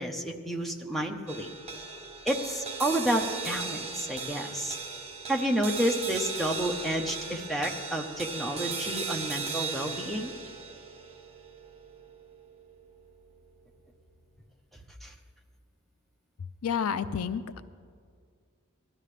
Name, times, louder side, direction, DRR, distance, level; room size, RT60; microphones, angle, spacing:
voice 1, 0.0-1.5 2.2-4.8 5.3-10.3 15.0-15.1, equal, ahead, 2 dB, 0.9 m, -30 dB
sound 1, 1.3-13.8, right 4 dB, 30° right, 1.0 m, -38 dB
voice 2, 16.6-17.6, left 7 dB, 90° left, 13 dB, 0.5 m, -30 dB
18.5 x 13.0 x 3.3 m, 2.1 s
head